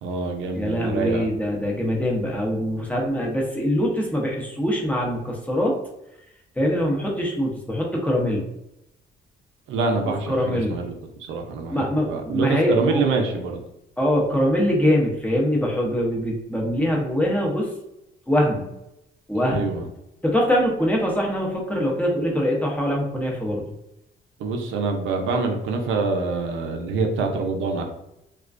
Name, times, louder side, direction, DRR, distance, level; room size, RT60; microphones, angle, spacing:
voice 1, 0.0-1.3 9.7-10.9 11.3-13.6 19.3-19.9 24.4-27.8, right 4 dB, 80° right, 2 dB, 0.5 m, -25 dB
voice 2, 0.5-5.8 6.6-8.4 10.3-10.8 11.7-13.0 14.0-17.7 18.3-18.7 19.3-19.8 20.2-23.7, equal, 5° left, -2 dB, 0.6 m, -23 dB
2.4 x 2.1 x 2.4 m, 0.86 s
cardioid pair, 90°, 20 cm